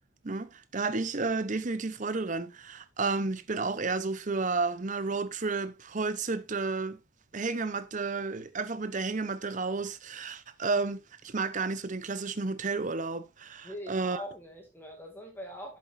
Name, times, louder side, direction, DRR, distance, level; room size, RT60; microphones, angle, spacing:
voice 1, 0.2-7.0 7.3-14.2, right 3 dB, 35° right, 0.7 m, -32 dB
voice 2, 13.6-15.8, equal, 10° left, 2.2 m, -42 dB
11.0 x 7.6 x 2.5 m
head